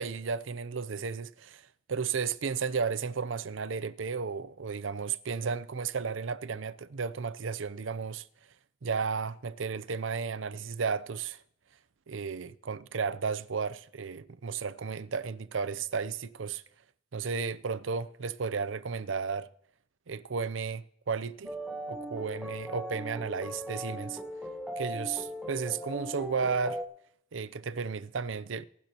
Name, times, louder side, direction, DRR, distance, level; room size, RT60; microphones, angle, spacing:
voice 1, 0.0-8.3 8.8-11.4 12.1-16.6 17.1-19.5 20.1-21.6 21.9-24.2 24.8-26.8 27.3-28.7, right 5 dB, 70° right, 0.6 m, -33 dB
sound 1, 21.5-26.8, equal, 5° right, 1.3 m, -38 dB
24.5 x 12.0 x 3.0 m
head